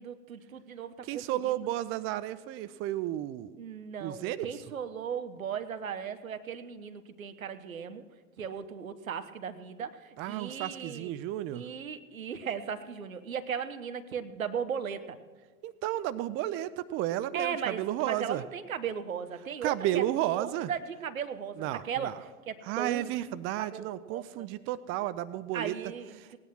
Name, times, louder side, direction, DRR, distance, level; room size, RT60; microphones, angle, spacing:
voice 1, 0.0-1.7 3.6-8.0 8.4-11.1 11.5-15.2 17.3-20.0 20.3-23.1 23.6-24.5 25.5-26.4, right 7 dB, 85° right, 10 dB, 1.2 m, -37 dB
voice 2, 1.1-3.5 4.0-4.5 10.2-11.6 15.6-18.4 19.6-20.7 21.6-22.1 22.6-25.7 26.2-26.4, right 14 dB, 30° right, 15 dB, 0.5 m, -32 dB
18.0 x 9.8 x 6.0 m, 1.4 s
hypercardioid pair, 95°, 40 cm